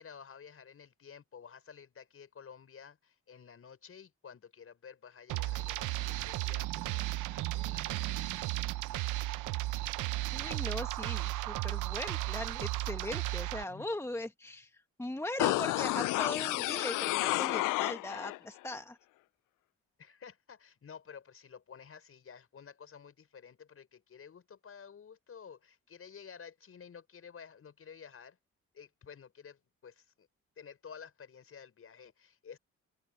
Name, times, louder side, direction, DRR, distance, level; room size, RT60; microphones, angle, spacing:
voice 1, 0.0-8.3 13.6-13.9 20.0-28.4 28.7-30.3 30.6-32.6, left 7 dB, 50° left, 6.5 m, -52 dB
sound 1, 5.3-13.6, right 16 dB, 85° right, 0.8 m, -34 dB
voice 2, 10.3-19.0, left 2 dB, 10° left, 1.4 m, -40 dB
sound 2, 15.4-18.4 18.7-18.8, left 19 dB, 90° left, 0.5 m, -31 dB
open air
cardioid pair, 90°, 30 cm